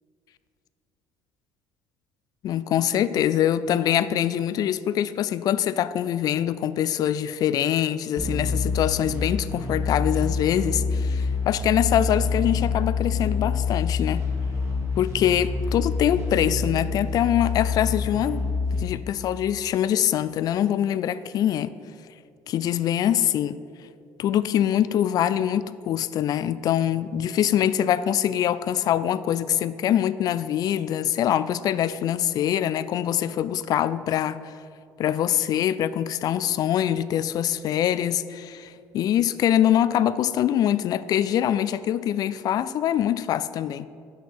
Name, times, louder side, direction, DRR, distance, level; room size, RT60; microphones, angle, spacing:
voice 1, 2.4-14.2 15.0-18.5 18.7-21.7 22.5-23.6 24.2-34.5 35.0-43.9, left 10 dB, 55° left, 16 dB, 0.3 m, -24 dB
sound 1, 8.2-18.8, left 4 dB, 35° right, 1.8 m, -27 dB
6.4 x 5.4 x 5.9 m, 2.2 s
supercardioid pair, 75°, 8 cm